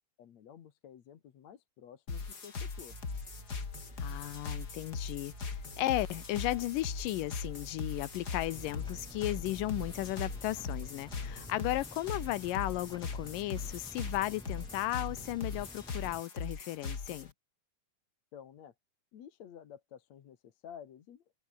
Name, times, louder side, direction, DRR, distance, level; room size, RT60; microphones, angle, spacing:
voice 1, 0.2-3.0 18.3-18.7 19.1-21.2, left 9 dB, 60° left, 2.8 m, -52 dB
sound 1, 2.1-17.3, left 4 dB, 30° left, 2.8 m, -40 dB
sound 2, 2.8-11.8, right 2 dB, 15° right, 5.5 m, -51 dB
voice 2, 4.0-17.3, left 16 dB, 80° left, 2.4 m, -35 dB
sound 3, 8.5-16.2, equal, 5° left, 0.3 m, -51 dB
open air
omnidirectional pair, 3.9 m